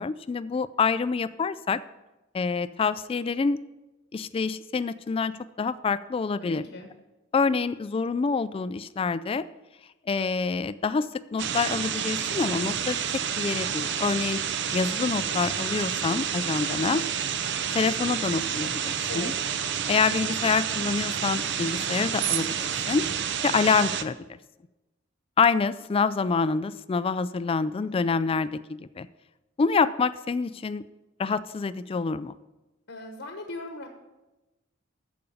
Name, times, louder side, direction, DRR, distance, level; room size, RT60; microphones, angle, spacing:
voice 1, 0.0-1.8 2.3-3.6 4.1-6.6 7.3-9.5 10.1-13.0 13.4-14.4 14.7-17.0 17.7-19.3 19.9-23.0 23.4-24.4 25.4-29.1 29.6-30.8 31.2-32.3, left 5 dB, 30° left, 15 dB, 0.3 m, -26 dB
voice 2, 6.4-6.9 19.1-19.4 32.9-33.9, left 2 dB, 65° left, 4 dB, 1.1 m, -38 dB
sound 1, 11.4-24.0, right 8 dB, 60° right, 0.6 m, -29 dB
13.5 x 5.2 x 7.0 m, 1.1 s
head